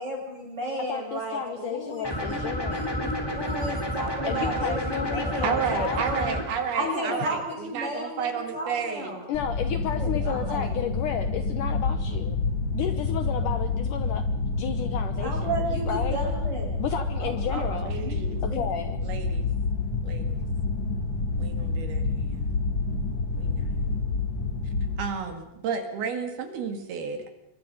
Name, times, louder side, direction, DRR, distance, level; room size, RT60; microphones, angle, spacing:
voice 1, 0.0-5.8 6.1-6.4 6.7-9.2 9.9-10.8 15.2-17.7 18.0-18.2 18.5-18.6, right 1 dB, 25° right, -1 dB, 7.2 m, -33 dB
voice 2, 0.9-2.9 4.3-6.0 6.8-7.2 9.3-12.4 12.7-14.3 14.6-15.5 15.9-16.2 16.8-17.9 18.4-19.0, left 8 dB, 70° left, 9 dB, 2.2 m, -32 dB
sound 1, 2.0-6.4, equal, 5° left, 3.2 m, -30 dB
voice 3, 5.4-7.4 7.7-9.2 17.8-18.4 19.0-19.5 20.0-20.4 21.4-22.5 23.4-23.8 25.0-27.3, right 6 dB, 75° right, 6 dB, 4.1 m, -32 dB
sound 2, 9.3-25.0, left 3 dB, 30° left, 3.6 m, -28 dB
26.0 x 22.5 x 5.5 m, 0.88 s
omnidirectional pair, 4.6 m